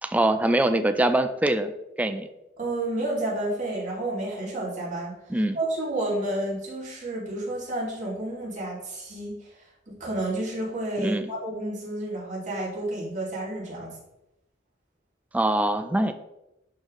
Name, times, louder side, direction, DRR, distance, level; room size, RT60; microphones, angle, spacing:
voice 1, 0.0-1.7 2.0-2.3 5.3-5.6 11.0-11.3 15.3-16.1, right 1 dB, 10° right, 9 dB, 0.3 m, -23 dB
voice 2, 2.6-5.2 5.5-9.4 9.9-14.0, right 1 dB, 40° right, -5 dB, 2.6 m, -30 dB
11.0 x 3.9 x 3.1 m, 0.90 s
head